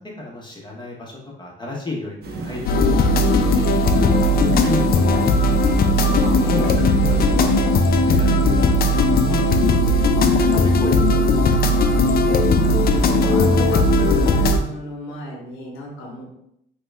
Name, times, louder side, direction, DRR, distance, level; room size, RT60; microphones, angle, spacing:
voice 1, 0.0-2.9 3.4-5.3 6.5-6.7 7.0-7.6 7.9-8.9 9.2-11.9, left 2 dB, 20° left, -2 dB, 0.8 m, -32 dB
sound 1, 2.2-7.3, right 4 dB, 55° right, 0.5 m, -35 dB
sound 2, 2.7-14.6, left 1 dB, 50° left, 0.4 m, -17 dB
voice 2, 12.5-16.2, left 2 dB, 85° left, -3 dB, 0.8 m, -32 dB
3.0 x 2.2 x 3.2 m, 0.75 s
cardioid pair, 90°, 20 cm